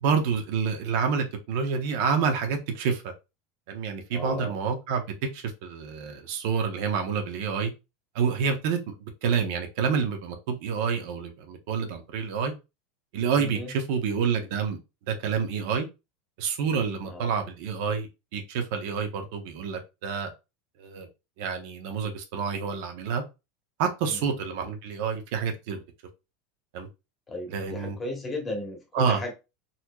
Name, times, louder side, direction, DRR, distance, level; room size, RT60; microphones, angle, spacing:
voice 1, 0.0-3.1 3.7-7.7 8.1-8.8 9.2-12.5 13.1-14.8 15.1-15.9 16.4-20.3 20.8-21.1 21.4-23.2 23.8-25.8 26.7-26.9 27.5-28.0 28.9-29.2, right 6 dB, 60° right, 0.8 m, -28 dB
voice 2, 4.1-4.5 13.3-13.7 17.1-17.3 24.1-24.2 27.3-29.3, left 2 dB, 15° left, 1.1 m, -35 dB
4.1 x 3.0 x 2.3 m
supercardioid pair, 160°, 0 cm